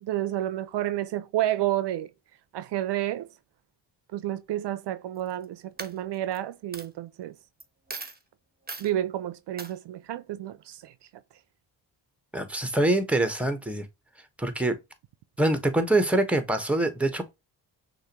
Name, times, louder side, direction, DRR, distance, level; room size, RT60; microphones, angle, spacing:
voice 1, 0.0-2.1 2.5-3.3 4.1-7.4 8.8-10.9, right 13 dB, 70° right, 0.6 m, -30 dB
Coin (dropping), 5.2-5.4 5.8-6.4 6.7-6.9 7.6-7.7 7.9-8.2 8.7-8.9 9.6-9.7, right 4 dB, 20° right, 1.1 m, -38 dB
voice 2, 12.3-13.9 14.4-14.8 15.4-17.3, right 1 dB, 5° right, 1.3 m, -24 dB
6.3 x 2.7 x 3.0 m
supercardioid pair, 55°, 44 cm